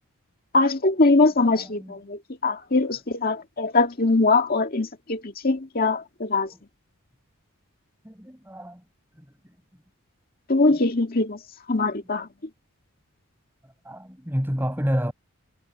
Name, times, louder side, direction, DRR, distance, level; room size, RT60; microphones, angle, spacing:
voice 1, 0.5-6.5 10.5-11.4 11.7-12.3, left 3 dB, 40° left, 2.0 m, -22 dB
voice 2, 1.5-1.9 6.5-6.6 8.1-8.8 13.9-15.1, equal, 10° right, 5.4 m, -29 dB
head